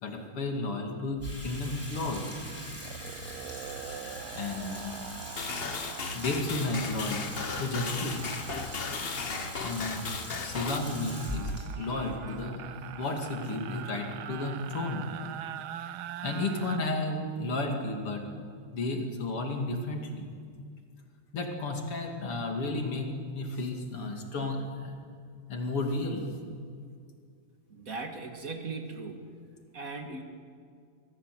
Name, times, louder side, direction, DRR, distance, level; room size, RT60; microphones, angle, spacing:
voice 1, 0.0-2.3 4.3-5.0 6.1-7.2 7.6-8.2 9.6-10.1 10.4-12.6 13.0-15.1 16.2-18.3 18.7-20.3 21.3-23.1 23.3-24.9 25.5-26.3, left 2 dB, 85° left, 2 dB, 3.4 m, -33 dB
Water tap faucet / Sink (filling or washing), 1.2-13.5, equal, 5° left, 5.2 m, -41 dB
sound 1, 1.9-2.1 2.4-16.8, right 11 dB, 75° right, 1.5 m, -44 dB
sound 2, 5.4-10.8, left 5 dB, 45° left, 0.7 m, -36 dB
voice 2, 27.7-29.4 29.7-30.2, right 3 dB, 40° right, 4 dB, 2.0 m, -38 dB
25.5 x 16.0 x 7.8 m, 2.2 s
omnidirectional pair, 2.4 m